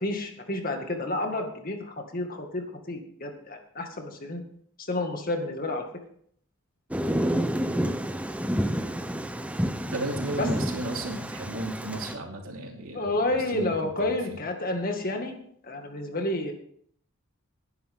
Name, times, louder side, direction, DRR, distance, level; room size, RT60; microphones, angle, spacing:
voice 1, 0.0-4.4 4.9-5.8 10.4-10.5 12.9-15.3 15.6-16.5, left 2 dB, 40° left, 4 dB, 2.1 m, -30 dB
Thunder, 6.9-12.1, equal, 5° right, 0.6 m, -29 dB
voice 2, 9.9-14.4, right 2 dB, 75° right, 1 dB, 3.0 m, -34 dB
19.0 x 10.5 x 3.7 m, 0.64 s
head